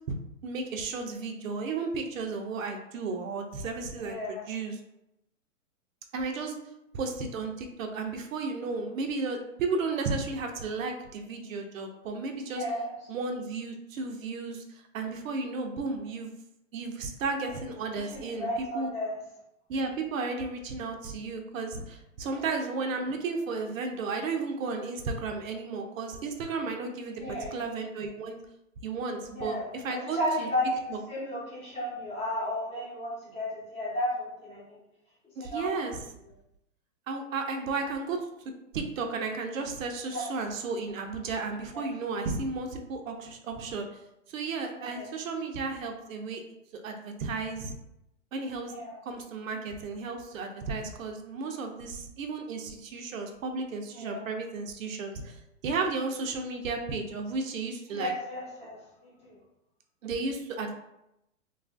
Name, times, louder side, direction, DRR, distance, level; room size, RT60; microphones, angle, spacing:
voice 1, 0.4-4.8 6.1-6.5 6.9-12.6 13.1-16.3 16.7-18.5 18.7-18.9 19.7-28.4 28.8-30.5 30.9-31.0 35.4-36.0 37.1-38.3 38.7-43.8 44.3-46.4 46.7-47.8 48.3-48.7 49.1-55.3 55.6-58.1 60.0-60.7, right 4 dB, 75° right, 4 dB, 0.6 m, -33 dB
voice 2, 4.0-4.4 12.5-12.9 18.0-19.1 22.2-22.4 27.2-27.6 29.3-29.7 29.9-34.8 35.4-35.9 40.1-40.2 41.7-41.8 44.7-45.1 48.7-49.0 53.9-54.2 57.9-59.4, left 1 dB, 15° left, -7 dB, 0.8 m, -34 dB
3.0 x 2.4 x 2.4 m, 0.85 s
hypercardioid pair, 140°, 40 cm